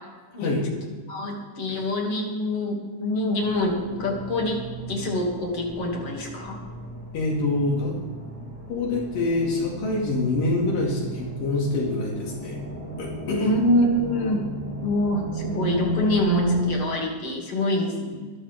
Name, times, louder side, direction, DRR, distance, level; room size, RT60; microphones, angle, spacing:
voice 1, 1.1-4.6 4.9-6.6 13.4-14.4 14.8-18.3, left 1 dB, 45° left, 0 dB, 3.2 m, -25 dB
sound 1, 3.4-16.7, right 2 dB, 20° right, 3.5 m, -34 dB
voice 2, 7.1-8.0 8.7-12.6 13.0-13.5, left 2 dB, 70° left, -2 dB, 4.0 m, -25 dB
22.5 x 12.5 x 3.6 m, 1.4 s
omnidirectional pair, 4.1 m